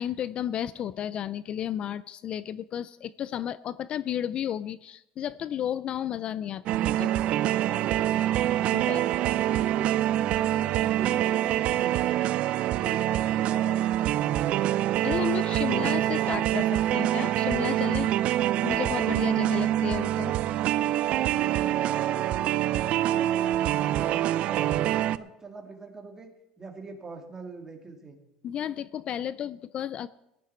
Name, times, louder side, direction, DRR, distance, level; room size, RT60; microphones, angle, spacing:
voice 1, 0.0-7.1 8.7-9.0 15.0-18.1 18.6-20.3 28.4-30.1, left 10 dB, 45° left, 17 dB, 0.4 m, -33 dB
sound 1, 6.7-25.2, right 13 dB, 55° right, 0.5 m, -25 dB
voice 2, 7.6-8.4 8.7-12.4 12.7-14.6 21.4-28.2, right 3 dB, 20° right, 3 dB, 2.7 m, -43 dB
17.5 x 11.0 x 4.4 m, 0.86 s
supercardioid pair, 105°, 2 cm